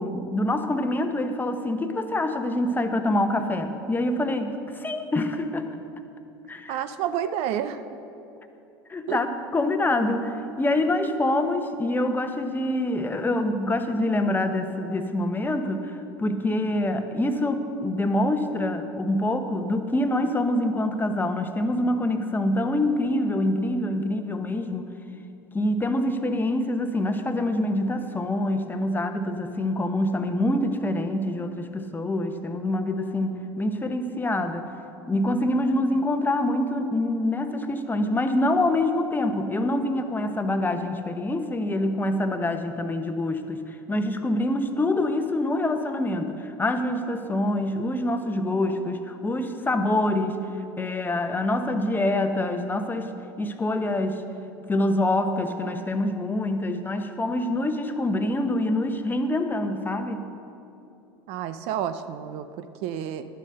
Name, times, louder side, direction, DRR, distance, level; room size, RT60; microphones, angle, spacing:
voice 1, 0.0-5.7 6.5-6.8 8.9-24.9 25.5-34.7 35.1-50.4 50.8-53.1 53.4-54.2 54.7-60.2, left 1 dB, 15° left, 7 dB, 0.9 m, -25 dB
voice 2, 6.7-7.8 9.1-9.2 61.3-63.3, right 10 dB, 60° right, 11 dB, 0.6 m, -30 dB
11.5 x 7.4 x 6.6 m, 2.7 s
hypercardioid pair, 85°, 12 cm